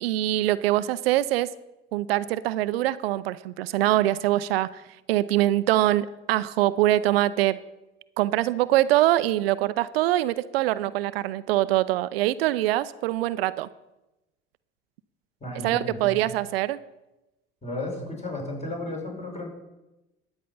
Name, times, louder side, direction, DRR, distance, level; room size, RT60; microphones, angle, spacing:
voice 1, 0.0-1.5 1.9-4.8 5.1-7.6 8.2-13.7 15.6-16.8, right 15 dB, 75° right, 15 dB, 0.5 m, -23 dB
voice 2, 15.4-16.2 17.6-19.5, left 1 dB, 20° left, 0 dB, 5.3 m, -34 dB
13.5 x 9.0 x 5.6 m, 0.99 s
hypercardioid pair, 65°, 30 cm